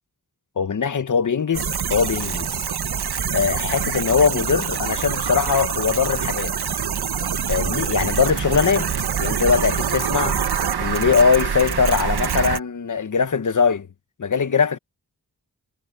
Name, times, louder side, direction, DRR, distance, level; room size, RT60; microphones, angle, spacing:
voice 1, 0.6-2.5 3.3-6.5 7.5-8.9 9.2-10.4 10.8-13.9 14.2-14.8, left 6 dB, 55° left, 1.0 m, -21 dB
sound 1, 1.5-12.6, right 7 dB, 85° right, 1.2 m, -25 dB
wide cardioid pair, 110°, 37 cm